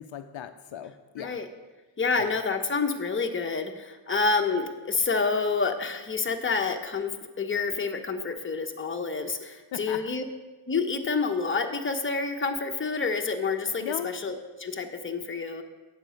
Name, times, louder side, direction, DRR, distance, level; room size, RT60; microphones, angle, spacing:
voice 1, 0.0-1.4 2.2-2.3 9.7-10.0 13.8-14.1, left 10 dB, 65° left, 8 dB, 0.6 m, -37 dB
voice 2, 1.2-1.5 2.0-7.1 7.4-10.2 10.7-15.6, left 4 dB, 25° left, 4 dB, 0.9 m, -28 dB
9.0 x 7.4 x 5.1 m, 1.2 s
cardioid pair, 85°, 50 cm